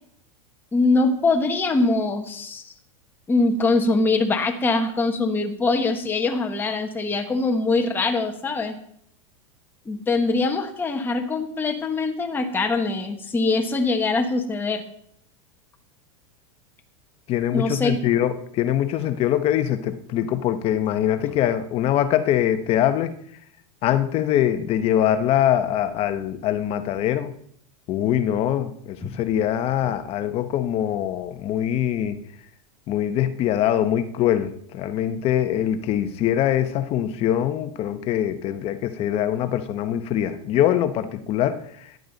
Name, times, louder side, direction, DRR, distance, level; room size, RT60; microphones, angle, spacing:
voice 1, 0.7-2.7 3.3-8.8 9.9-14.8 17.5-18.0 29.0-29.2, left 3 dB, 10° left, 3 dB, 1.3 m, -23 dB
voice 2, 17.3-23.1 23.8-27.3 27.9-32.2 32.9-41.6, left 11 dB, 35° left, 10 dB, 1.1 m, -23 dB
14.5 x 11.0 x 4.1 m, 0.66 s
supercardioid pair, 145°, 18 cm